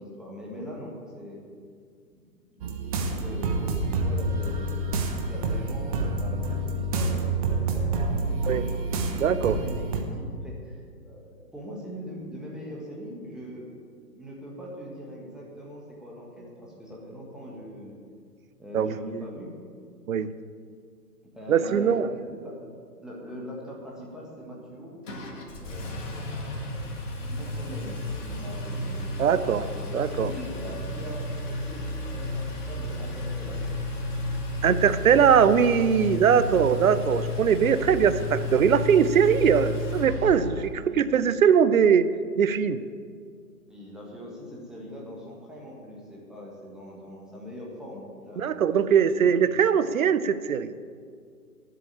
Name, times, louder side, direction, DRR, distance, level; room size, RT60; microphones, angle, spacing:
voice 1, 0.0-1.4 2.3-3.6 3.9-8.5 9.5-13.7 14.1-17.9 18.6-19.5 21.3-22.7 23.0-25.0 25.6-26.0 27.2-33.6 40.7-41.2 43.7-49.7, equal, ahead, -4 dB, 1.5 m, -41 dB
sound 1, 2.6-10.0, right 2 dB, 25° right, 0.9 m, -28 dB
voice 2, 9.2-9.5 18.7-19.2 20.1-20.3 21.5-22.1 29.2-29.6 29.9-30.3 34.6-42.1 42.4-42.8 48.4-50.7, right 7 dB, 60° right, 14 dB, 0.7 m, -21 dB
Engine, 25.1-40.8, left 2 dB, 50° left, 2.3 m, -32 dB
10.5 x 7.8 x 8.7 m, 2.1 s
figure-of-eight pair, 130°, 48 cm